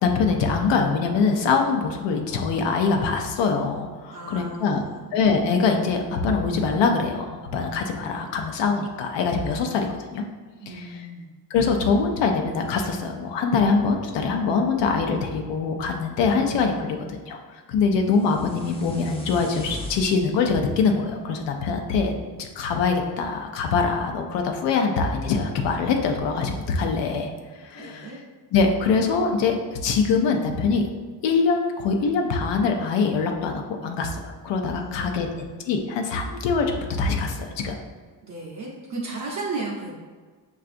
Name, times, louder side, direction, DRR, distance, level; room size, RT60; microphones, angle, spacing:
voice 1, 0.0-4.8 5.1-10.2 10.7-11.0 11.5-27.3 27.6-28.1 28.5-29.5 29.8-30.8 31.2-37.8, left 4 dB, 90° left, 3 dB, 0.6 m, -23 dB
voice 2, 4.1-5.1 10.6-11.3 27.8-28.2 34.8-35.4 38.2-39.9, right 3 dB, 45° right, -4 dB, 0.6 m, -35 dB
sound 1, 18.1-22.2, left 1 dB, 15° left, 0.3 m, -40 dB
5.6 x 2.4 x 2.5 m, 1.4 s
cardioid pair, 155°, 42 cm